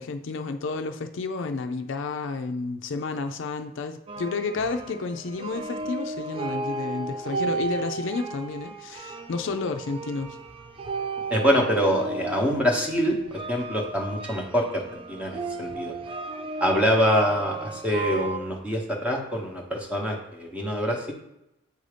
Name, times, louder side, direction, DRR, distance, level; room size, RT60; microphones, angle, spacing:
voice 1, 0.0-10.4, left 4 dB, 60° left, 7 dB, 0.4 m, -31 dB
sound 1, 4.1-18.4, right 3 dB, 25° right, 0.3 m, -34 dB
voice 2, 11.3-13.2 13.5-15.9 16.6-21.1, equal, 5° right, 0 dB, 0.9 m, -25 dB
8.0 x 2.7 x 4.9 m, 0.87 s
head